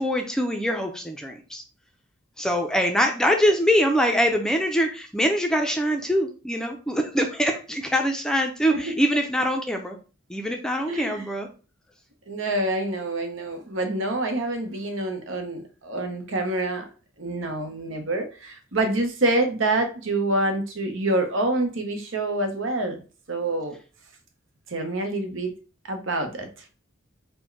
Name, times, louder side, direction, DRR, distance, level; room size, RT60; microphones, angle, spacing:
voice 1, 0.0-1.6 2.4-10.0 10.3-11.5, equal, 5° left, 3 dB, 0.4 m, -23 dB
voice 2, 10.9-11.2 12.3-16.9 17.2-23.0 23.3-23.7 24.7-25.5 25.9-26.5, right 2 dB, 75° right, 5 dB, 0.9 m, -26 dB
4.3 x 2.2 x 4.5 m, 0.35 s
head